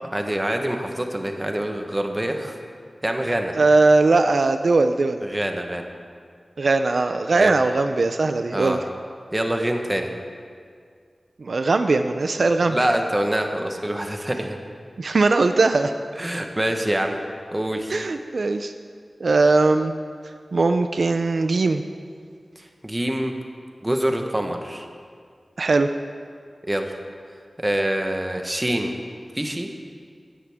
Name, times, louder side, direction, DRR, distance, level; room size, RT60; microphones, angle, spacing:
voice 1, 0.1-2.6 3.0-3.5 5.2-5.8 7.4-7.6 8.5-8.8 9.3-10.1 12.7-14.6 16.2-17.2 17.5-17.9 22.6-23.3 23.8-24.9 26.7-26.9 27.6-29.0 29.3-29.7, right 1 dB, 20° right, 4 dB, 1.1 m, -25 dB
voice 2, 3.5-5.2 6.6-8.8 11.4-12.8 15.0-15.9 17.9-18.7 19.2-19.9 20.5-21.8 25.6-25.9, right 3 dB, 75° right, 8 dB, 0.4 m, -19 dB
16.5 x 11.0 x 3.6 m, 2.1 s
wide cardioid pair, 85°, 0 cm